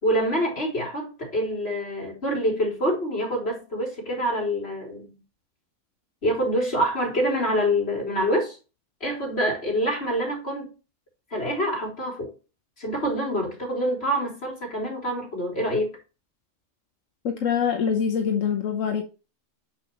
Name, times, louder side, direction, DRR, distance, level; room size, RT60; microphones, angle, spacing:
voice 1, 0.0-5.1 6.2-8.6 9.0-10.7 11.3-12.3 12.8-15.9, equal, 50° left, 3.9 m, -26 dB
voice 2, 17.2-19.0, left 7 dB, 85° left, 1.4 m, -24 dB
7.6 x 6.3 x 3.0 m
omnidirectional pair, 1.3 m